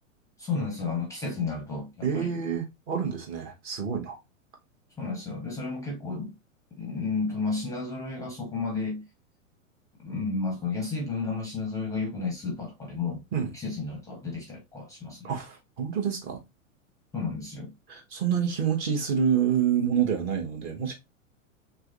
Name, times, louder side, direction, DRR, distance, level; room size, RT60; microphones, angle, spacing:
voice 1, 0.4-2.3 5.0-6.3 6.7-9.0 10.0-13.2 13.5-15.3 17.1-17.7, left 4 dB, 10° left, 0.6 m, -32 dB
voice 2, 2.0-4.2 13.3-13.5 15.2-16.4 17.9-20.9, right 8 dB, 30° right, 0.7 m, -27 dB
3.0 x 2.4 x 2.6 m
figure-of-eight pair, 95°, 40 cm